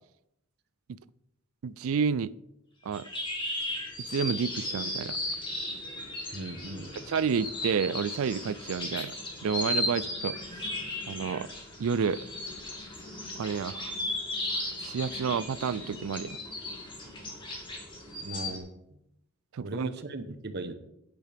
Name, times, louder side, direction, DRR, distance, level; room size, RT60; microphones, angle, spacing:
voice 1, 1.6-2.3 2.8-3.1 4.1-5.2 7.1-9.1 9.4-10.6 11.1-11.5 11.8-12.2 13.4-13.9 14.8-16.4 19.5-19.9, right 6 dB, 65° right, 18 dB, 0.4 m, -30 dB
sound 1, 2.9-18.6, left 1 dB, 20° left, 2.3 m, -36 dB
voice 2, 6.3-7.1 18.2-19.0 19.6-20.7, right 2 dB, 50° right, 9 dB, 0.9 m, -38 dB
10.5 x 9.1 x 3.5 m, 0.84 s
head